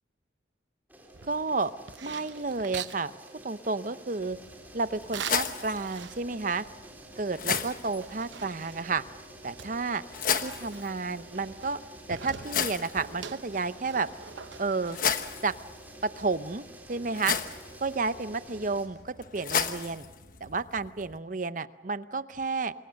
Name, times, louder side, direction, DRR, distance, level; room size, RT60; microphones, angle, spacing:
sound 1, 0.9-18.9, right 1 dB, 10° right, 3.6 m, -50 dB
sound 2, 1.1-3.0 5.1-6.5 6.8-6.9 7.2-9.1 9.6-11.8 12.1-15.2, right 7 dB, 75° right, 0.9 m, -43 dB
voice 1, 1.3-1.7 2.0-3.1 3.4-4.4 4.7-6.6 7.2-9.0 9.4-10.0 10.4-11.8 12.1-14.1 14.6-15.0 15.4-15.5 16.0-17.4 17.8-20.1 20.4-22.7, right 3 dB, 45° right, 13 dB, 0.7 m, -31 dB
sound 3, 4.2-21.2, left 7 dB, 45° left, 1.2 m, -36 dB
26.5 x 22.5 x 6.5 m, 1.1 s
head